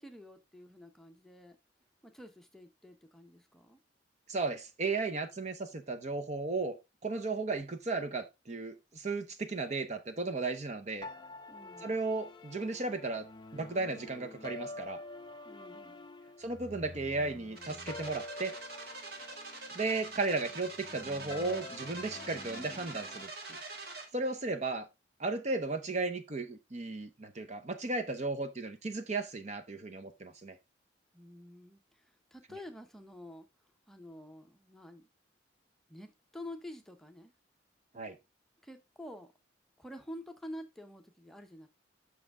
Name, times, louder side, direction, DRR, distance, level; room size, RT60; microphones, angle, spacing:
voice 1, 0.0-1.6 2.0-3.8 11.5-12.0 15.4-16.1 31.1-33.5 33.9-35.1 35.9-37.3 38.6-39.3 39.8-41.7, left 1 dB, ahead, 0.8 m, -48 dB
voice 2, 4.3-6.8 7.0-11.1 11.8-13.2 13.5-15.0 16.4-18.5 19.7-23.6 24.1-24.9 25.2-30.6 37.9-38.1, right 3 dB, 40° right, 0.7 m, -35 dB
sound 1, 11.0-23.2, left 2 dB, 25° left, 0.5 m, -48 dB
sound 2, 17.6-24.1, right 3 dB, 55° right, 1.8 m, -45 dB
7.7 x 6.1 x 3.6 m
head